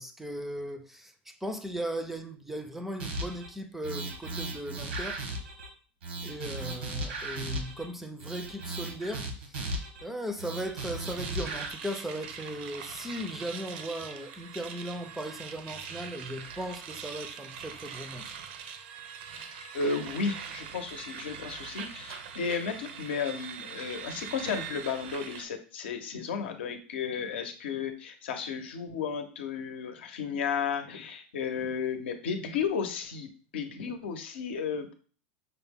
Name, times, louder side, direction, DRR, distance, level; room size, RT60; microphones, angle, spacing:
voice 1, 0.0-5.2 6.2-9.7 10.0-18.4, equal, 5° right, 0.4 m, -37 dB
sound 1, 3.0-3.5 3.8-5.7 6.0-7.9 8.2-10.0 10.4-11.7, right 2 dB, 90° right, 1.1 m, -36 dB
sound 2, 11.1-25.4, right 7 dB, 70° right, 0.5 m, -42 dB
voice 2, 19.7-33.3 33.5-34.9, left 6 dB, 85° left, 0.7 m, -33 dB
5.6 x 2.1 x 3.5 m
supercardioid pair, 135°, 6 cm